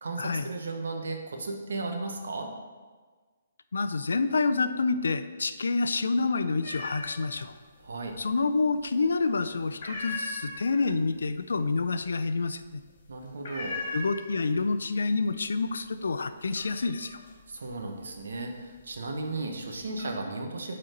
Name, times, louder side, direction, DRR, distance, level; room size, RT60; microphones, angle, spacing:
voice 1, 0.0-2.5 7.8-8.2 13.1-13.8 17.5-20.7, right 3 dB, 80° right, 3 dB, 1.1 m, -35 dB
voice 2, 3.7-7.5 8.2-12.8 13.9-17.2, left 4 dB, 85° left, 11 dB, 0.4 m, -28 dB
sound 1, 6.6-7.4 7.8-8.5 8.9-9.3 9.6-14.7 15.0-15.6 15.9-19.0 19.5-20.1, left 2 dB, 50° left, 2.1 m, -39 dB
6.5 x 4.3 x 5.2 m, 1.4 s
hypercardioid pair, 160°, 0 cm